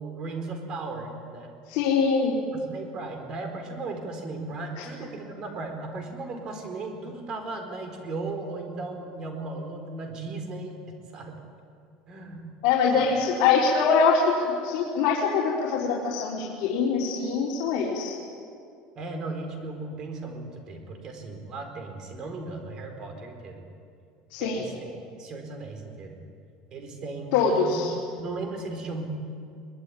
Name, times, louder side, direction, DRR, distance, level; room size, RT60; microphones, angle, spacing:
voice 1, 0.0-1.5 2.5-10.8 11.1-11.4 12.1-12.5 12.9-13.1 19.0-23.6 24.4-24.9 25.2-26.2 26.7-27.8 28.2-29.1, right 3 dB, 30° right, 5 dB, 4.3 m, -36 dB
voice 2, 1.7-2.4 4.8-4.9 12.6-18.2 24.3-24.6 27.3-27.9, left 5 dB, 65° left, -4 dB, 4.0 m, -23 dB
23.0 x 21.5 x 10.0 m, 2.4 s
cardioid pair, 170°, 2 cm